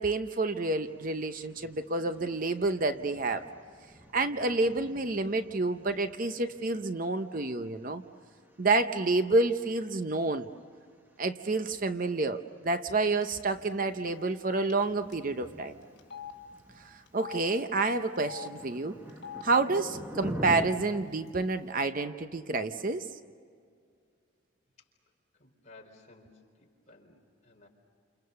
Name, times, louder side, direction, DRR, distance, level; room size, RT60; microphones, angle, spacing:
voice 1, 0.0-3.5 4.1-8.0 8.6-10.5 11.2-15.7 16.8-18.9 19.4-23.1, right 3 dB, 40° right, 9 dB, 0.8 m, -29 dB
sound 1, 0.8-20.7, equal, 10° right, 1.4 m, -47 dB
Telephone, 13.2-13.4 13.7-13.8 14.7-14.8 15.1-15.2 16.0-16.3 17.1-17.4 18.2-18.5 19.1-19.4 20.2-20.3 20.6-21.3, left 8 dB, 55° left, 3.1 m, -43 dB
voice 2, 25.4-27.7, left 2 dB, 35° left, 0 dB, 4.5 m, -56 dB
29.5 x 29.0 x 6.9 m, 2.2 s
head